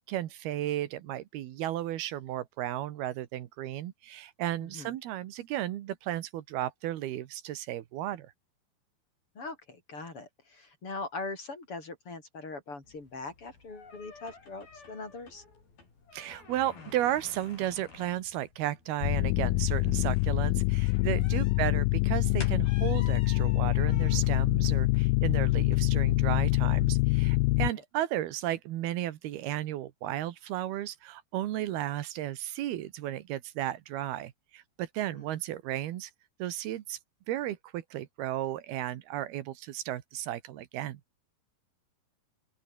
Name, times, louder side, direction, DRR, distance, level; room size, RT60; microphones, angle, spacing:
voice 1, 0.1-8.3 16.1-36.1 36.4-37.0 37.3-41.0, right 13 dB, 80° right, 3.2 m, -34 dB
voice 2, 4.6-5.0 9.4-15.4 21.3-21.4 27.8-27.9 35.1-35.3, left 3 dB, 35° left, 5.2 m, -41 dB
sound 1, 12.8-26.7, left 4 dB, 65° left, 9.1 m, -52 dB
sound 2, 19.0-27.7, left 22 dB, 80° left, 2.1 m, -25 dB
open air
omnidirectional pair, 4.5 m